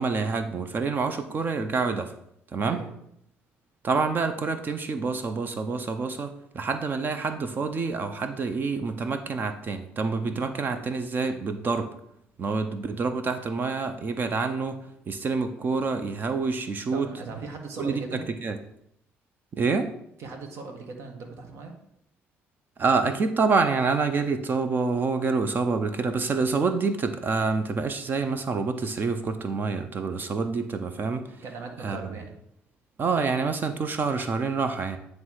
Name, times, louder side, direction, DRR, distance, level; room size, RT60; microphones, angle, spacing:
voice 1, 0.0-2.1 2.5-2.8 3.8-11.9 12.4-14.8 15.1-17.1 17.8-18.6 19.5-19.9 22.8-31.2 31.8-32.1 33.0-35.0, right 4 dB, 40° right, 8 dB, 0.7 m, -27 dB
voice 2, 16.9-18.2 20.2-21.8 31.4-32.3, right 4 dB, 70° right, 3 dB, 1.4 m, -39 dB
9.3 x 3.2 x 4.8 m, 0.75 s
cardioid pair, 95°, 5 cm